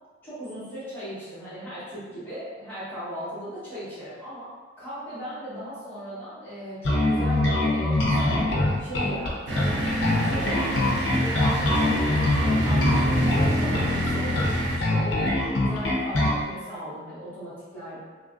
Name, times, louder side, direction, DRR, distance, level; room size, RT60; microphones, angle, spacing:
voice 1, 0.2-4.5 4.8-8.5 8.8-9.7 10.0-18.0, equal, 10° left, -14 dB, 1.2 m, -37 dB
Bass guitar, 6.8-16.4, left 1 dB, 75° left, 0.6 m, -24 dB
sound 1, 9.5-14.8, equal, 65° right, 0.5 m, -26 dB
3.1 x 2.5 x 2.4 m, 1.4 s
head